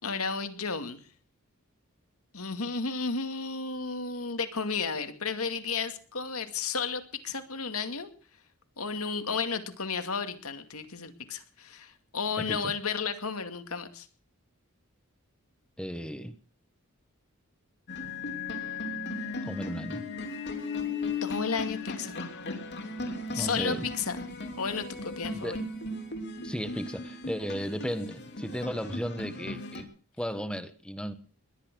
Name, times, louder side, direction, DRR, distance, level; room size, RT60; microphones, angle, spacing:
voice 1, 0.0-1.0 2.3-8.1 8.8-14.1 21.2-22.2 23.3-24.3 24.6-25.6, left 5 dB, 80° left, 8 dB, 2.3 m, -33 dB
voice 2, 12.4-12.7 15.8-16.3 19.4-20.1 23.3-23.9 25.3-25.6 26.4-29.9 30.2-31.1, equal, 5° left, 11 dB, 1.2 m, -35 dB
sound 1, 17.9-29.8, left 3 dB, 50° left, 3.1 m, -36 dB
21.0 x 11.0 x 6.2 m, 0.42 s
head